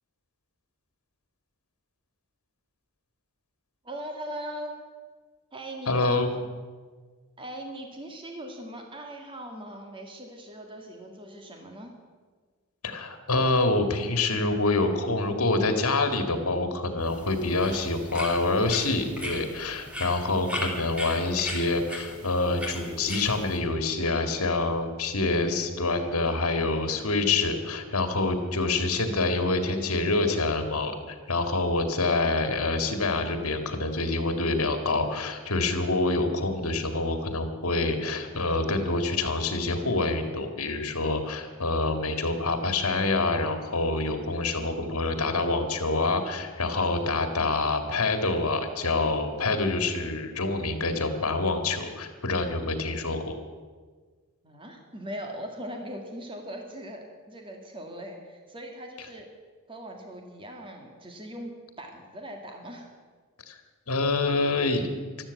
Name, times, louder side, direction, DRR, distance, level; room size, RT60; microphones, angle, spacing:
voice 1, 3.8-4.8 5.5-6.5 7.4-12.0 54.4-59.3 59.7-61.5 61.8-62.9, right 1 dB, 25° right, 2 dB, 1.8 m, -40 dB
voice 2, 5.9-6.3 12.8-53.4 63.5-63.6 63.9-64.9, left 3 dB, 70° left, 7 dB, 2.1 m, -26 dB
sound 1, 17.0-23.6, left 1 dB, 5° right, 2.8 m, -38 dB
13.5 x 13.0 x 8.4 m, 1.5 s
head